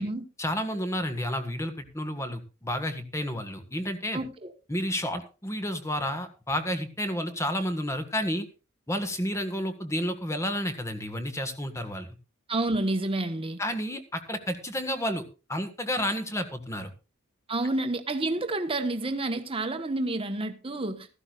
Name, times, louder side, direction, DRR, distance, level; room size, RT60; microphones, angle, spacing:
voice 1, 0.4-4.2 4.7-8.4 8.9-12.1 13.6-16.9, equal, 15° left, 1.6 m, -31 dB
voice 2, 4.1-4.5 12.5-13.6 17.5-21.1, right 2 dB, 25° right, 1.3 m, -29 dB
15.5 x 14.5 x 2.5 m
head